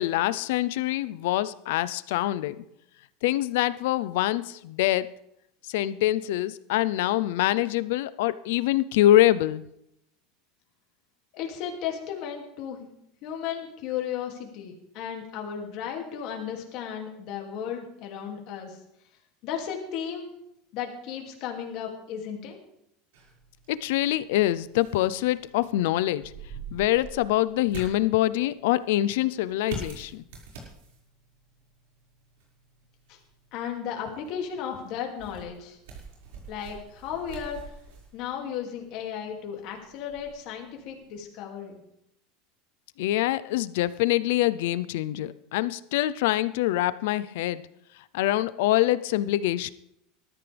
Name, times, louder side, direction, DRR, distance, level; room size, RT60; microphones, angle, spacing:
voice 1, 0.0-2.7 3.2-5.1 5.7-9.6 23.7-26.3 26.7-30.2 43.0-47.7 48.1-49.7, left 14 dB, 65° left, 16 dB, 0.6 m, -25 dB
voice 2, 11.3-12.9 13.2-18.8 19.4-20.4 20.7-22.6 33.1-33.2 33.5-35.8 36.5-37.7 38.1-41.8, left 8 dB, 40° left, 1 dB, 2.5 m, -35 dB
sound 1, 23.1-41.2, right 4 dB, 90° right, 5.4 m, -46 dB
19.5 x 13.5 x 3.5 m, 0.78 s
supercardioid pair, 175°, 0 cm